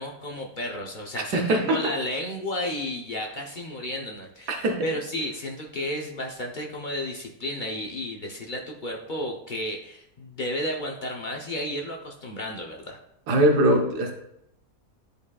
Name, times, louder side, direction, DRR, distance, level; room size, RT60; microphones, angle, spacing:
voice 1, 0.0-13.0, left 1 dB, 50° left, 1 dB, 0.6 m, -32 dB
voice 2, 1.3-2.0 4.5-4.9 13.3-14.1, right 1 dB, 80° right, 3 dB, 1.4 m, -22 dB
11.0 x 5.1 x 2.3 m, 0.80 s
omnidirectional pair, 1.7 m